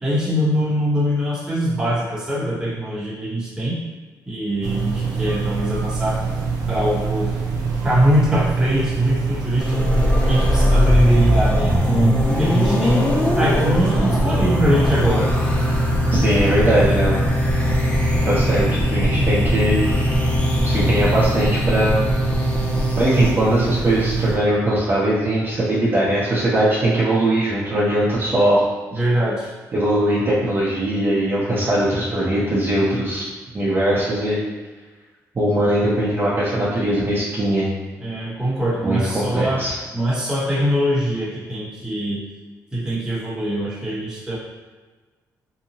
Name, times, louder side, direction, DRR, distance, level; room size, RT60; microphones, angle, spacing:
voice 1, 0.0-3.8 4.3-6.2 6.7-7.4 7.8-13.0 13.4-15.3 19.1-19.4 28.9-29.5 38.0-39.6 39.9-42.2 42.7-44.4, equal, 10° right, -7 dB, 0.9 m, -22 dB
sound 1, 4.6-24.4, right 5 dB, 75° right, 0.5 m, -25 dB
sound 2, 9.6-23.3, left 1 dB, 15° left, 0.4 m, -21 dB
voice 2, 16.1-17.2 18.2-19.8 20.6-22.0 23.0-28.6 29.7-33.2 33.5-34.4 35.3-37.7 38.8-39.7, right 1 dB, 35° right, -8 dB, 0.7 m, -20 dB
2.8 x 2.1 x 2.7 m, 1.3 s
cardioid pair, 95°, 7 cm